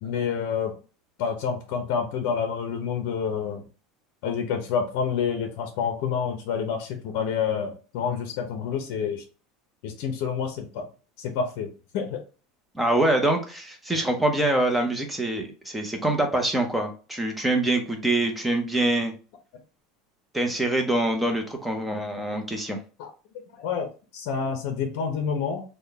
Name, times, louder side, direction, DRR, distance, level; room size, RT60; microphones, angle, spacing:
voice 1, 0.0-0.7 1.2-3.6 4.2-9.2 9.8-10.8 11.2-12.2 23.0-23.1 23.6-25.6, left 6 dB, 60° left, 4 dB, 0.7 m, -28 dB
voice 2, 12.7-19.1 20.3-22.8, right 1 dB, 5° right, 4 dB, 0.7 m, -25 dB
3.7 x 2.2 x 3.4 m, 0.35 s
supercardioid pair, 150°, 0 cm